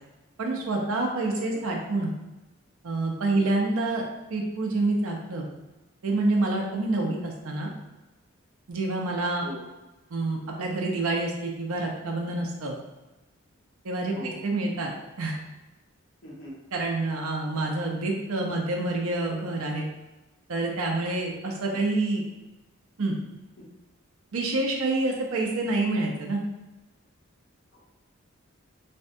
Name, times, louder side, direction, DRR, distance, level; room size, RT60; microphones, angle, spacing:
voice 1, 0.4-2.1 2.8-4.0 4.3-5.5 6.0-7.7 8.7-9.4 10.1-12.8 13.8-14.9 15.2-15.3 16.7-19.9 20.5-22.2 23.0-23.2 24.3-26.4, right 2 dB, 85° right, 0 dB, 0.6 m, -27 dB
voice 2, 1.2-1.6 3.3-3.7 7.0-7.1 9.4-9.6 14.1-14.4 16.2-16.6 21.7-21.8 27.7-27.8, left 1 dB, 65° left, -6 dB, 1.0 m, -41 dB
3.4 x 2.2 x 2.6 m, 1.1 s
head